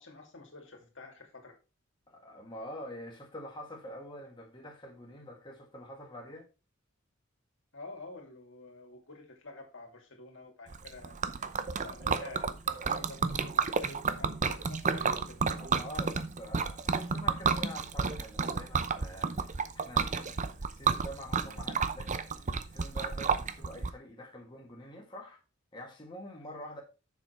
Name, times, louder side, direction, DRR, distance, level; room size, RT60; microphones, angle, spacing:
voice 1, 0.0-1.5 7.7-15.4 26.3-26.7, left 2 dB, 65° left, 2.7 m, -49 dB
voice 2, 2.1-6.5 15.5-22.1 22.4-25.4 25.7-26.8, equal, 25° left, 1.7 m, -46 dB
Liquid, 10.7-23.9, right 5 dB, 35° right, 0.7 m, -31 dB
7.2 x 6.8 x 4.5 m
head